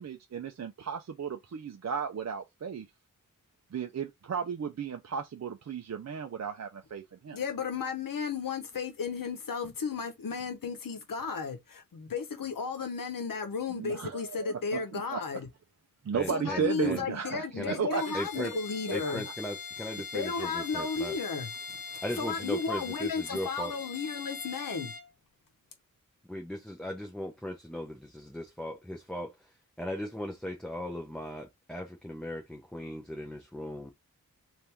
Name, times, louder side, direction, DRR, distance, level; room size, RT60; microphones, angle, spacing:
voice 1, 0.0-2.9 3.7-7.4 13.7-15.4 16.0-18.6 18.9-19.1, right 7 dB, 50° right, 0.6 m, -35 dB
voice 2, 7.3-15.5 16.3-19.2 20.1-24.9, left 5 dB, 80° left, 1.0 m, -34 dB
voice 3, 16.1-17.1 17.6-17.8 18.1-18.5 18.9-21.1 22.0-23.7 26.3-29.3 29.8-33.9, left 1 dB, ahead, 0.8 m, -38 dB
Bowed string instrument, 17.9-25.1, left 5 dB, 50° left, 1.1 m, -42 dB
3.5 x 2.6 x 4.4 m
wide cardioid pair, 65°, 33 cm